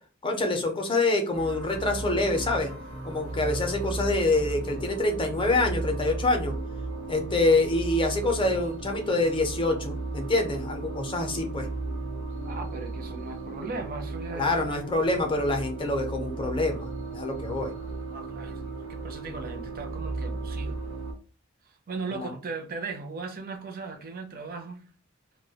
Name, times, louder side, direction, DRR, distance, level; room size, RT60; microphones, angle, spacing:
voice 1, 0.2-2.7 3.0-6.5 7.1-11.7 14.3-17.7 22.1-22.3, left 2 dB, 25° left, 0.5 m, -26 dB
sound 1, 1.3-21.1, right 3 dB, 85° right, 0.6 m, -35 dB
voice 2, 12.4-14.7 18.1-20.9 21.9-24.9, right 4 dB, 45° right, 0.5 m, -38 dB
2.2 x 2.1 x 2.7 m
head